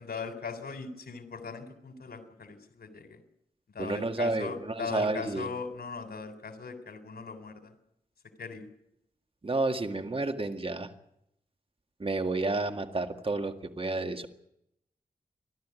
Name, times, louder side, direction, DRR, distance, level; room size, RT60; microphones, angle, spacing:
voice 1, 0.0-3.2 3.7-7.7 8.4-8.7, left 5 dB, 90° left, 8 dB, 3.5 m, -39 dB
voice 2, 3.8-5.5 9.4-10.9 12.0-14.3, right 2 dB, 35° right, 7 dB, 1.9 m, -30 dB
30.0 x 12.0 x 9.5 m, 0.77 s
wide cardioid pair, 80°, 16 cm